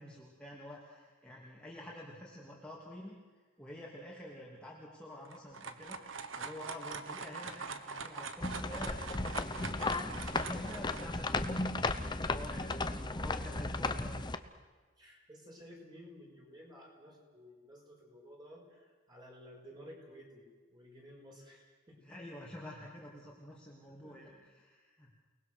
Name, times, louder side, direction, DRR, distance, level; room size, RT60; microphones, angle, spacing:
voice 1, 0.0-3.2 3.6-6.0 6.4-11.7 12.1-14.2 22.0-25.1, left 1 dB, 5° left, -5 dB, 2.8 m, -48 dB
sound 1, 5.2-11.1, right 5 dB, 75° right, 1.5 m, -43 dB
sound 2, 8.4-14.4, left 2 dB, 20° left, 0.9 m, -35 dB
voice 2, 12.4-13.2 15.0-22.1 23.9-24.4, equal, 20° right, -1 dB, 5.8 m, -55 dB
29.5 x 20.0 x 6.4 m, 1.4 s
head